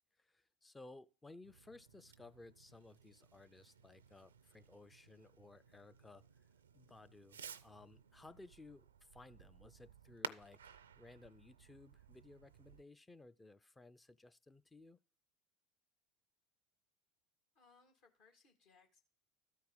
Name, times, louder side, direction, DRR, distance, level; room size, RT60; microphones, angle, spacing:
voice 1, 0.2-6.2 6.7-15.0, left 2 dB, 15° left, 0.5 m, -59 dB
Fireworks, 1.4-12.8, right 7 dB, 80° right, 0.4 m, -55 dB
voice 2, 17.6-19.0, left 4 dB, 60° left, 1.9 m, -68 dB
13.0 x 4.7 x 5.3 m
figure-of-eight pair, 75°, 0 cm